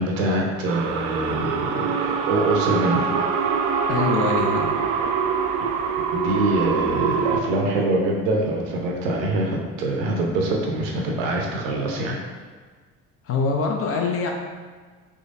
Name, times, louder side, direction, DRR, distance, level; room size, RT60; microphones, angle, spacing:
voice 1, 0.0-3.1 5.6-5.7 6.1-12.2, right 2 dB, 65° right, -1 dB, 0.8 m, -24 dB
sound 1, 0.7-7.4, right 6 dB, 45° right, 0.4 m, -24 dB
voice 2, 3.9-4.8 13.2-14.3, left 4 dB, 30° left, 1 dB, 0.5 m, -24 dB
3.8 x 3.0 x 2.6 m, 1.4 s
figure-of-eight pair, 60°, 44 cm